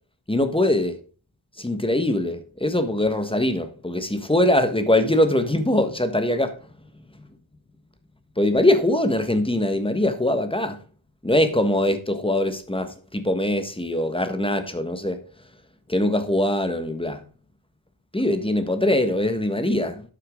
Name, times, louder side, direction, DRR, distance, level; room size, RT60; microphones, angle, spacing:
voice 1, 0.3-1.0 1.6-6.6 8.4-10.8 11.2-15.2 15.9-17.2 18.1-20.0, left 1 dB, 10° left, 1.4 m, -22 dB
11.5 x 8.4 x 3.7 m
wide cardioid pair, 115°, 47 cm